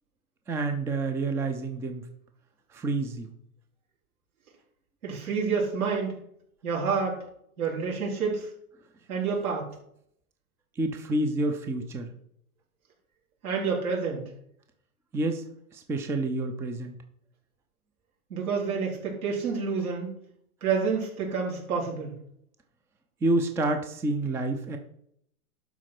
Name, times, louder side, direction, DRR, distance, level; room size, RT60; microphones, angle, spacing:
voice 1, 0.5-2.1 2.7-3.3 10.8-12.1 15.1-15.4 15.7-17.0 23.2-24.8, right 2 dB, 5° right, 6 dB, 0.5 m, -28 dB
voice 2, 5.0-6.2 6.6-7.2 7.6-8.5 9.1-9.7 13.4-14.2 18.3-20.1 20.6-22.1, right 5 dB, 75° right, -3 dB, 4.5 m, -28 dB
11.5 x 4.3 x 5.9 m, 0.70 s
hypercardioid pair, 130°, 44 cm